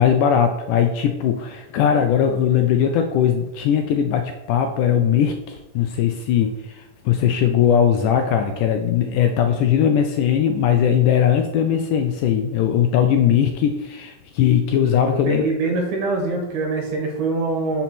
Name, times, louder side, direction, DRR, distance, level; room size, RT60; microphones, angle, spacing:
voice 1, 0.0-15.4, left 8 dB, 80° left, 5 dB, 1.9 m, -19 dB
voice 2, 15.3-17.8, right 3 dB, 70° right, 1 dB, 2.4 m, -23 dB
5.7 x 4.0 x 6.0 m, 0.99 s
omnidirectional pair, 4.0 m